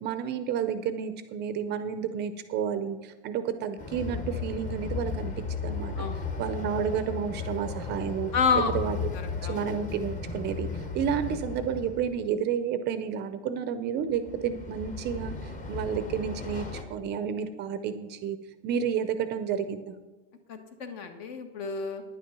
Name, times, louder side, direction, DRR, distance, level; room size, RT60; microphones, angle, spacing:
voice 1, 0.0-5.3 5.6-6.0 6.4-8.3 8.7-9.0 9.4-10.7 10.9-15.3 15.7-18.4 18.6-20.0, right 8 dB, 30° right, 10 dB, 0.5 m, -31 dB
Train, 3.8-12.3 14.1-16.8, left 4 dB, 20° left, 1.0 m, -35 dB
voice 2, 6.0-6.3 8.3-8.7 9.1-9.6 20.5-22.0, left 5 dB, 60° left, 7 dB, 1.6 m, -29 dB
10.0 x 9.2 x 5.9 m, 1.2 s
supercardioid pair, 160°, 37 cm